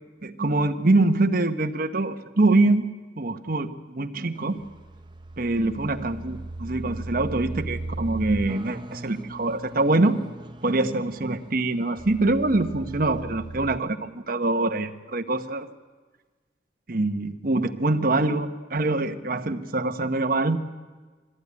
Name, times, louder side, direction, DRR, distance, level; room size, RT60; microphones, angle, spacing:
voice 1, 0.2-2.9 3.2-4.6 5.4-10.2 10.6-15.7 16.9-20.6, right 2 dB, 50° right, 7 dB, 1.0 m, -24 dB
sound 1, 4.4-13.8, right 2 dB, 25° right, 0.6 m, -37 dB
21.5 x 14.5 x 9.6 m, 1.4 s
head